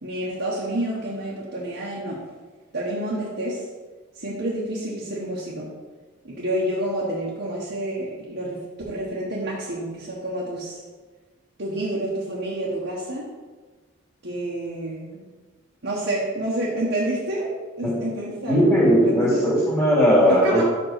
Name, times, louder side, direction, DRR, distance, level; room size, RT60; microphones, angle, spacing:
voice 1, 0.0-2.2 2.7-3.6 4.1-5.7 6.2-8.6 8.8-10.8 11.6-13.3 14.2-15.1 15.8-17.5 17.8-18.7 19.0-19.4 20.3-20.6, right 1 dB, 55° right, -6 dB, 1.4 m, -28 dB
voice 2, 18.5-20.6, equal, 15° left, -7 dB, 2.6 m, -18 dB
5.9 x 5.5 x 5.9 m, 1.4 s
head